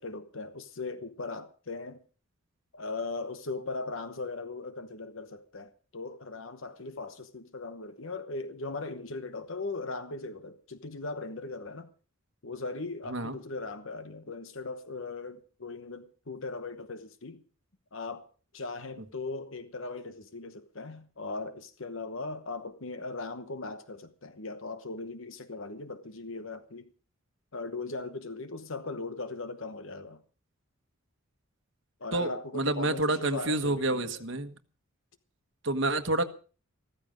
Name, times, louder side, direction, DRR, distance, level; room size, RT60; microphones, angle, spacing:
voice 1, 0.0-2.0 2.7-11.9 12.4-17.4 17.9-26.9 27.5-30.2 32.0-34.2, left 3 dB, 65° left, 1.1 m, -39 dB
voice 2, 32.1-34.5 35.6-36.2, right 2 dB, 55° right, 1.4 m, -28 dB
15.0 x 14.5 x 5.1 m
head